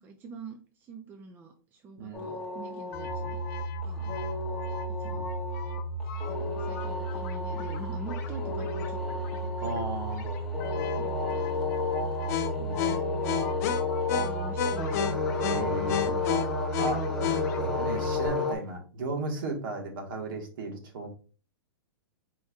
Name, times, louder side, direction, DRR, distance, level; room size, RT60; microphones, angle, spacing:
voice 1, 0.0-3.4 3.8-4.1 5.0-5.4 6.4-9.8 11.0-12.1 12.9-13.2 14.2-15.2 15.5-16.5 17.1-17.3, right 3 dB, 15° right, 5 dB, 0.5 m, -46 dB
voice 2, 2.0-2.3 4.0-4.1 5.0-5.2 9.6-10.3 12.6-12.8 15.5-16.2 16.8-17.1 17.6-21.1, right 3 dB, 60° right, 2 dB, 1.5 m, -35 dB
sound 1, 2.1-18.5, left 4 dB, ahead, 1.1 m, -33 dB
sound 2, 2.9-18.3, left 2 dB, 45° left, 0.7 m, -33 dB
4.5 x 4.2 x 2.3 m, 0.37 s
hypercardioid pair, 150°, 13 cm